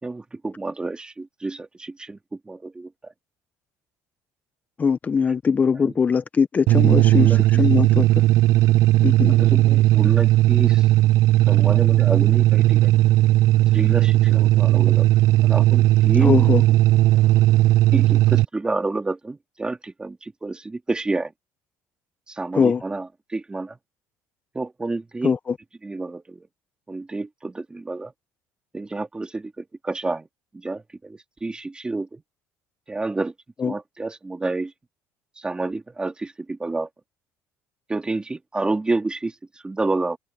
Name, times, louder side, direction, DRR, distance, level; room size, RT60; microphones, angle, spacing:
voice 1, 0.0-3.1 5.8-5.9 6.9-7.4 9.3-10.9 11.5-13.0 13.7-16.8 17.1-17.2 17.9-21.3 22.3-23.8 24.5-25.3 25.8-26.5 26.9-28.1 28.7-30.3 30.5-32.2 32.9-33.3 33.6-34.7 35.4-36.9 37.9-40.2, right 3 dB, 15° right, 2.1 m, -29 dB
voice 2, 4.8-8.1 9.0-9.3 16.2-16.6 22.5-22.8 25.2-25.4 33.6-33.7, left 6 dB, 30° left, 0.7 m, -21 dB
sound 1, 6.7-18.4, right 16 dB, 70° right, 0.4 m, -16 dB
cardioid pair, 110°, 6 cm